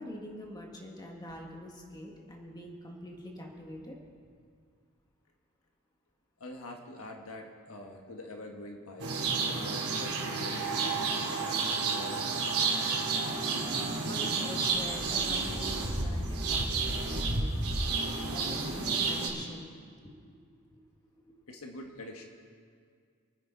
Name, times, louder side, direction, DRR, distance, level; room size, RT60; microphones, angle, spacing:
voice 1, 0.0-4.0 13.7-17.8 18.3-19.7 20.2-20.8, left 1 dB, 20° left, 0 dB, 1.9 m, -45 dB
voice 2, 6.4-9.2 9.4-12.6 21.5-22.3, left 1 dB, 70° left, 2 dB, 1.6 m, -45 dB
sound 1, 9.0-19.3, right 4 dB, 80° right, 2.8 m, -31 dB
28.0 x 9.9 x 4.0 m, 2.1 s
head